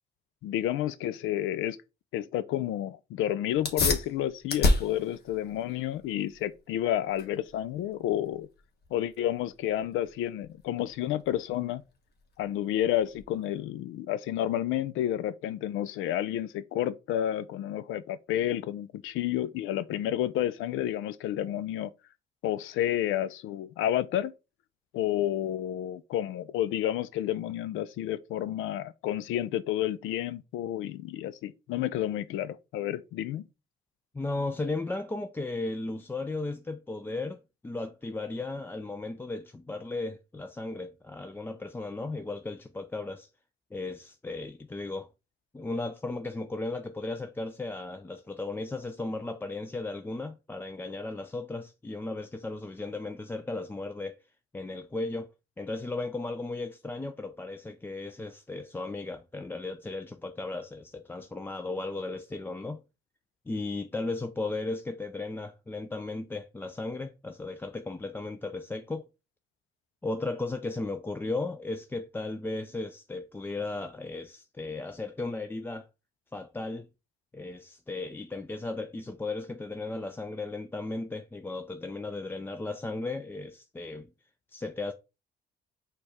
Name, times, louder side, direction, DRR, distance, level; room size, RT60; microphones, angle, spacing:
voice 1, 0.4-1.8 2.1-8.5 8.9-11.8 12.4-21.9 22.4-24.3 24.9-33.4, left 12 dB, 85° left, 0.4 m, -30 dB
sound 1, 3.5-13.6, left 2 dB, 55° left, 1.1 m, -33 dB
voice 2, 34.1-43.3 43.7-45.1 45.5-54.2 54.5-55.3 55.6-62.8 63.5-69.0 70.0-75.9 76.3-76.9 77.3-84.1 84.5-84.9, left 2 dB, 10° left, 0.3 m, -35 dB
4.4 x 2.3 x 4.7 m
cardioid pair, 90°, 20 cm